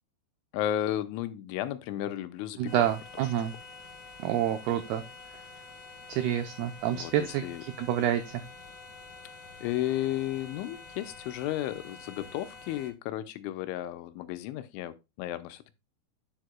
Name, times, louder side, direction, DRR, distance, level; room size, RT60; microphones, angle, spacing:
voice 1, 0.5-2.9 6.9-7.6 9.6-15.7, left 13 dB, 85° left, 3.1 m, -33 dB
voice 2, 2.6-3.5 4.2-5.0 6.1-8.4, right 11 dB, 85° right, 2.2 m, -28 dB
sound 1, 2.7-12.9, left 4 dB, 50° left, 2.7 m, -48 dB
9.9 x 7.7 x 2.2 m
omnidirectional pair, 5.5 m